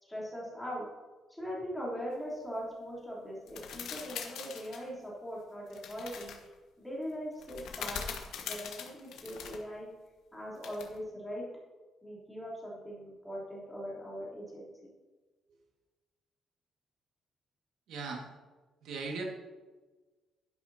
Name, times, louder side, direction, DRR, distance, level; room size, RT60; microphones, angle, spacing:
voice 1, 0.0-0.9 1.3-6.3 6.8-9.9 10.3-11.4 12.0-14.9, equal, 5° left, -7 dB, 3.3 m, -41 dB
sound 1, 3.5-4.8 5.7-6.4 7.4-9.6 10.6-11.0, left 7 dB, 80° left, 1.3 m, -42 dB
voice 2, 17.9-18.3 18.8-19.2, right 4 dB, 75° right, 1 dB, 1.8 m, -38 dB
11.5 x 10.5 x 2.8 m, 1.3 s
cardioid pair, 175°, 0 cm